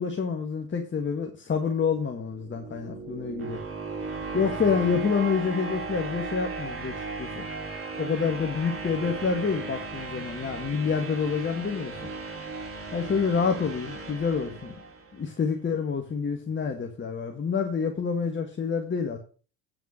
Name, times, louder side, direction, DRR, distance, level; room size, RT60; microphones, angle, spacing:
voice 1, 0.0-3.6 4.3-7.4 8.0-11.9 12.9-14.8 15.1-19.2, left 5 dB, 25° left, 4 dB, 1.7 m, -28 dB
sound 1, 2.2-15.3, right 4 dB, 30° right, 3.7 m, -36 dB
9.3 x 5.9 x 6.4 m, 0.39 s
hypercardioid pair, 65°, 45 cm